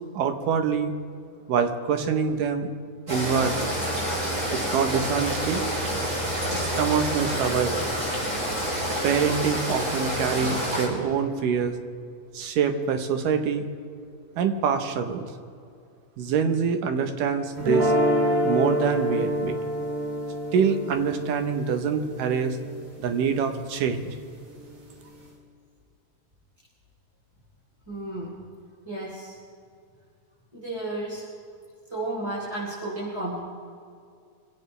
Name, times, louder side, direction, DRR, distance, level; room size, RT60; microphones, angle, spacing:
voice 1, 0.1-0.9 1.5-2.7 3.1-3.7 4.5-5.6 6.5-7.9 9.0-11.8 12.3-13.7 14.4-15.3 16.2-17.9 18.4-19.6 20.5-22.6 23.0-24.2, right 6 dB, 80° right, 7 dB, 2.7 m, -25 dB
sound 1, 3.1-10.9, equal, 25° right, 4.8 m, -28 dB
sound 2, 17.6-23.7, equal, 50° right, 3.8 m, -27 dB
voice 2, 27.9-28.3 28.8-29.4 30.5-31.2 31.9-33.4, right 2 dB, 10° right, -7 dB, 3.4 m, -32 dB
25.5 x 16.5 x 3.4 m, 2.3 s
omnidirectional pair, 3.8 m